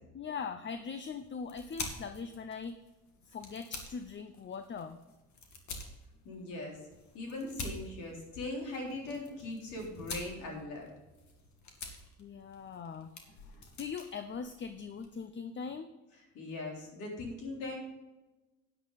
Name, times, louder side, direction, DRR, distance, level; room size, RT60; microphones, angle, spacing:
voice 1, 0.1-2.8 3.3-5.0 12.2-13.1 13.8-15.9, left 5 dB, 40° left, 10 dB, 0.7 m, -41 dB
sound 1, 0.7-15.2, left 3 dB, 65° left, 2.4 m, -48 dB
voice 2, 6.2-6.8 7.1-10.9 16.3-17.8, left 2 dB, 90° left, -1 dB, 3.7 m, -40 dB
10.0 x 10.0 x 4.1 m, 1.1 s
cardioid pair, 90°, 30 cm